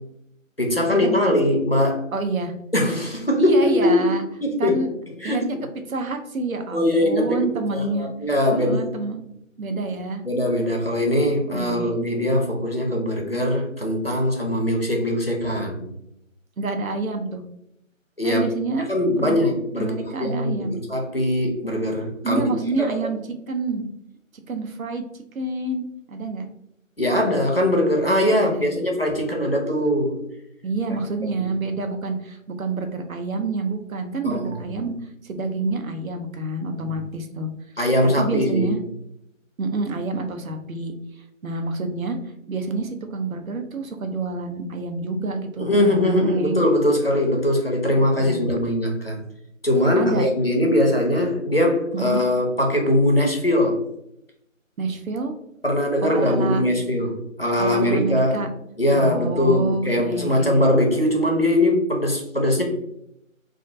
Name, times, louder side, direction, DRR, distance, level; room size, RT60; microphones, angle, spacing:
voice 1, 0.6-2.0 2.7-4.1 4.4-4.8 5.2-5.5 6.7-8.9 10.2-15.8 18.2-18.4 18.7-22.4 22.9-23.0 27.0-30.1 31.2-31.5 34.2-34.7 36.8-36.9 37.8-38.7 45.6-49.2 49.6-53.8 55.6-58.4 58.8-62.6, left 1 dB, 45° left, 0 dB, 0.4 m, -21 dB
voice 2, 2.1-2.5 3.4-4.2 4.6-4.9 5.2-5.6 5.9-8.1 8.5-9.2 9.6-10.2 11.5-11.9 16.6-17.4 18.2-18.9 19.2-19.4 19.8-20.8 22.2-23.2 23.5-23.9 24.5-25.1 25.3-26.4 28.2-28.6 30.6-34.9 35.2-37.5 38.2-38.8 39.6-40.9 41.4-42.2 42.5-46.6 47.9-48.5 50.0-50.2 51.9-52.2 54.8-55.3 56.0-56.6 57.6-58.5 58.9-60.6, right 3 dB, 80° right, 6 dB, 0.6 m, -27 dB
2.3 x 2.1 x 2.5 m, 0.80 s
figure-of-eight pair, 170°, 41 cm